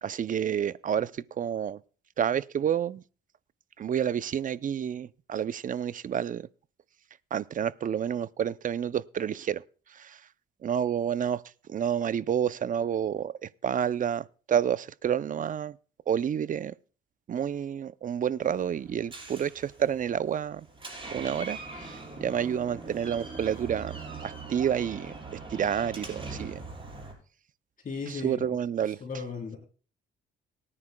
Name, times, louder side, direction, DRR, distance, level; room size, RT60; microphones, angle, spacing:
voice 1, 0.0-1.8 2.2-3.0 3.8-6.5 7.3-9.6 9.9-10.2 10.6-11.4 11.7-15.8 16.1-16.7 17.3-20.7 21.1-24.0 24.2-26.6 28.1-29.0, right 8 dB, 45° right, 0.5 m, -29 dB
Door, 18.4-27.1, right 3 dB, 25° right, 4.7 m, -42 dB
voice 2, 27.8-28.5 29.0-29.6, left 4 dB, 45° left, 3.3 m, -36 dB
23.5 x 9.8 x 2.2 m
cardioid pair, 90°, 20 cm